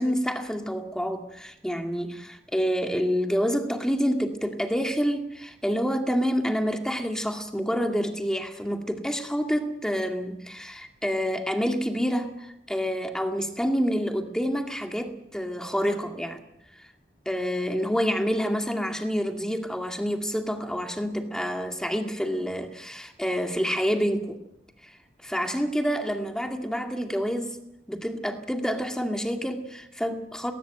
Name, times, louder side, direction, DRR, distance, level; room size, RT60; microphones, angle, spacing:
voice 1, 0.0-16.4 17.3-24.4 25.2-27.6 27.9-30.5, equal, 5° left, 4 dB, 2.1 m, -28 dB
19.5 x 19.0 x 7.7 m, 0.80 s
head